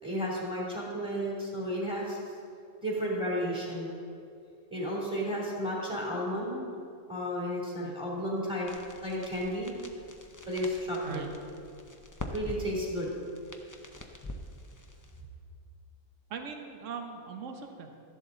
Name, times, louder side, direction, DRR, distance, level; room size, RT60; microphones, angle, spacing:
voice 1, 0.0-2.2 2.8-3.9 4.7-6.6 7.1-8.7 9.0-9.7 10.5-11.2 12.3-13.1, equal, 5° right, -5 dB, 3.0 m, -32 dB
sound 1, 8.7-15.2, left 1 dB, 25° left, 0.4 m, -45 dB
voice 2, 16.3-18.0, right 6 dB, 55° right, 5 dB, 1.3 m, -40 dB
13.5 x 11.0 x 4.0 m, 2.5 s
omnidirectional pair, 1.6 m